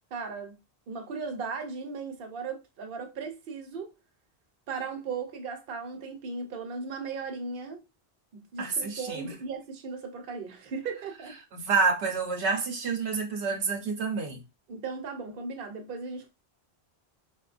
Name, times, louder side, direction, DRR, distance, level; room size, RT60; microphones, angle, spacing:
voice 1, 0.1-0.6 0.9-3.9 4.7-7.8 8.3-11.4 14.7-16.3, right 4 dB, 60° right, 0.9 m, -37 dB
voice 2, 8.6-9.3 11.5-14.4, right 4 dB, 90° right, 1.0 m, -28 dB
4.4 x 2.2 x 2.4 m
omnidirectional pair, 1.1 m